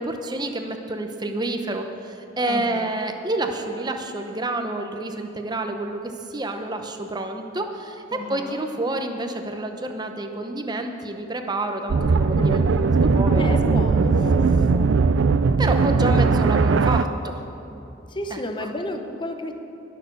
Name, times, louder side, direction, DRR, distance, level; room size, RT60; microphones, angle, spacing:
voice 1, 0.0-13.9 15.6-17.4 18.3-18.4, right 2 dB, 20° right, 5 dB, 0.9 m, -28 dB
voice 2, 2.5-2.9 8.1-8.7 12.3-12.6 13.4-15.2 16.0-16.5 18.1-19.5, left 1 dB, 25° left, 6 dB, 0.8 m, -32 dB
sound 1, 11.9-17.0, right 4 dB, 85° right, 0.5 m, -19 dB
20.5 x 6.8 x 6.7 m, 3.0 s
head